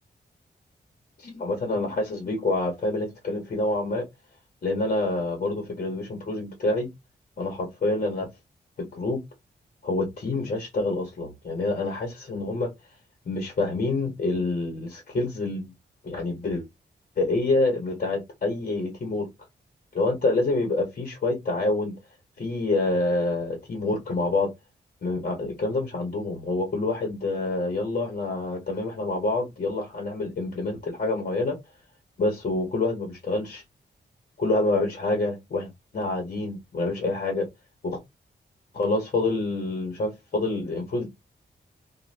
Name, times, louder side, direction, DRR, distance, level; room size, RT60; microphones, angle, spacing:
voice 1, 1.2-4.0 4.6-6.9 7.4-8.3 8.8-9.2 9.8-12.7 13.3-15.7 16.0-16.6 17.2-19.3 19.9-21.9 22.4-24.5 25.0-31.6 32.2-33.6 34.4-37.5 37.8-38.0 38.7-41.1, left 2 dB, 45° left, 0.9 m, -27 dB
3.0 x 2.3 x 3.2 m
wide cardioid pair, 150°, 18 cm